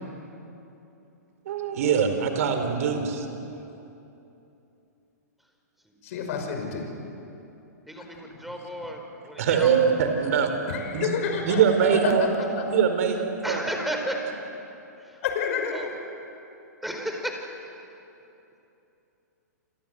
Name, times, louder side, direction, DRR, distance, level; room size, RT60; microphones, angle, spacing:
voice 1, 1.4-3.3 9.4-10.5 10.9-11.1 11.5-12.3 12.7-13.7, right 7 dB, 60° right, 6 dB, 4.6 m, -23 dB
voice 2, 6.0-6.9 8.0-8.4 8.7-8.9 10.7-11.6 12.0-12.1 15.2-16.0, left 6 dB, 55° left, 4 dB, 5.8 m, -30 dB
voice 3, 7.9-9.7 13.4-14.1 15.1-15.2 15.7-15.9 16.8-17.4, equal, ahead, 2 dB, 4.5 m, -33 dB
29.5 x 24.5 x 8.0 m, 2.9 s
hypercardioid pair, 115°, 9 cm